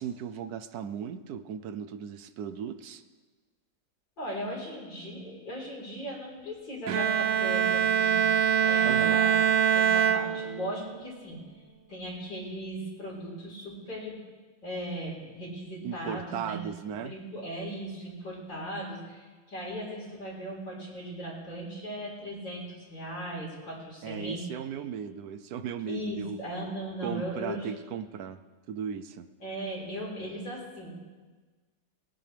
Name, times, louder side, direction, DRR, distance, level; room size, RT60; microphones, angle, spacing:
voice 1, 0.0-3.0 8.8-9.2 15.8-17.1 24.0-26.4 27.0-28.4 28.7-29.3, right 8 dB, 65° right, 10 dB, 1.1 m, -36 dB
voice 2, 4.2-8.3 8.6-9.4 9.7-11.6 11.9-14.2 14.6-24.4 25.9-27.7 29.4-30.9, equal, 75° left, -5 dB, 4.9 m, -38 dB
Bowed string instrument, 6.9-10.9, right 8 dB, 90° right, 1.5 m, -24 dB
20.0 x 17.0 x 3.4 m, 1.4 s
omnidirectional pair, 2.0 m